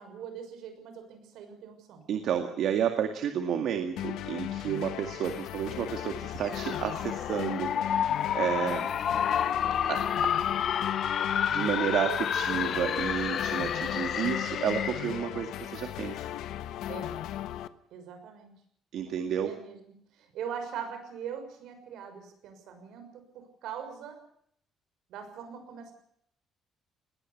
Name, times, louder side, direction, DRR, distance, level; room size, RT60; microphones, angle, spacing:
voice 1, 0.0-2.0 16.9-17.1 17.9-18.5 19.4-19.8 20.1-24.2 25.1-25.9, right 7 dB, 80° right, 7 dB, 6.3 m, -41 dB
voice 2, 2.1-8.9 9.9-10.4 11.5-16.3 18.9-19.5, right 8 dB, 60° right, 6 dB, 2.1 m, -31 dB
sound 1, 4.0-17.7, left 12 dB, 85° left, 1.2 m, -37 dB
sound 2, 6.4-15.2, left 9 dB, 45° left, 1.0 m, -30 dB
20.0 x 17.5 x 8.5 m, 0.69 s
cardioid pair, 160°, 0 cm